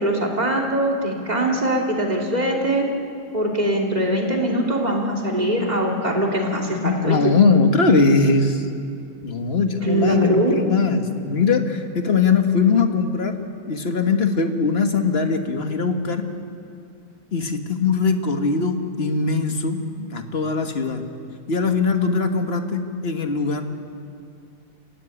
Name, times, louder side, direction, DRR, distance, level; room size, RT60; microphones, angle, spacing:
voice 1, 0.0-2.9 3.3-7.2 9.8-10.6, right 1 dB, 25° right, -1 dB, 3.1 m, -22 dB
voice 2, 6.8-8.7 9.2-13.4 13.7-16.3 17.3-21.0 21.5-23.6, left 4 dB, 40° left, 6 dB, 1.7 m, -21 dB
26.5 x 16.0 x 9.9 m, 2.4 s
omnidirectional pair, 1.6 m